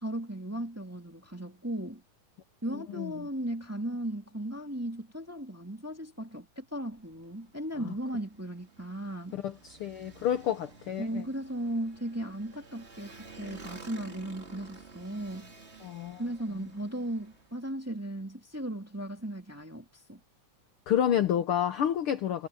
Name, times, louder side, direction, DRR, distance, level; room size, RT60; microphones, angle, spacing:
voice 1, 0.0-2.0 2.6-9.4 11.0-15.5 16.2-20.2, right 1 dB, 5° right, 1.5 m, -36 dB
voice 2, 2.7-3.3 7.8-7.9 9.3-11.2 15.8-16.2 20.9-22.5, left 10 dB, 80° left, 1.2 m, -29 dB
Motorcycle, 6.9-17.6, right 4 dB, 25° right, 2.1 m, -52 dB
omnidirectional pair, 3.7 m